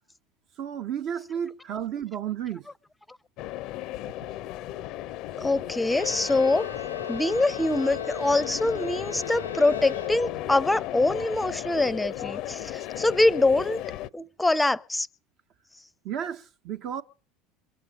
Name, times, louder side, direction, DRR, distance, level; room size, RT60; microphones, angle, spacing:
voice 1, 0.6-2.7 16.0-17.0, right 9 dB, 55° right, 1.0 m, -32 dB
sound 1, 3.4-14.1, left 14 dB, 55° left, 0.6 m, -35 dB
voice 2, 5.4-6.7 7.1-13.8 14.1-15.1, left 2 dB, 10° left, 0.6 m, -24 dB
Bowed string instrument, 5.9-10.6, left 6 dB, 90° left, 0.7 m, -38 dB
22.5 x 8.0 x 5.1 m
hypercardioid pair, 70°, 0 cm